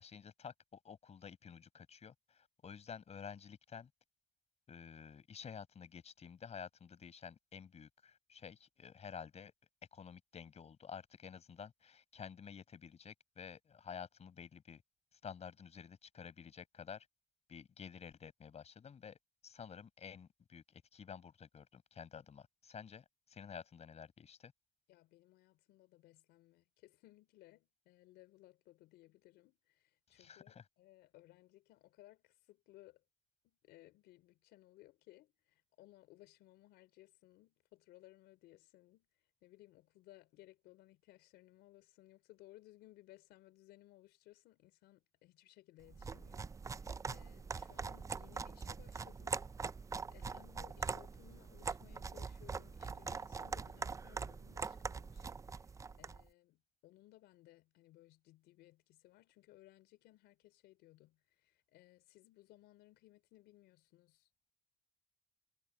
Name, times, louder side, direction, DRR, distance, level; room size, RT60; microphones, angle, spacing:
voice 1, 0.0-3.9 4.7-9.5 9.9-14.8 15.1-17.1 17.5-24.5 30.1-30.6, left 7 dB, 40° left, 6.6 m, -51 dB
voice 2, 24.9-33.0 33.4-49.4 50.1-64.5, left 17 dB, 85° left, 4.4 m, -63 dB
sound 1, 45.9-56.2, right 5 dB, 20° right, 0.4 m, -43 dB
cardioid pair, 110°, 17 cm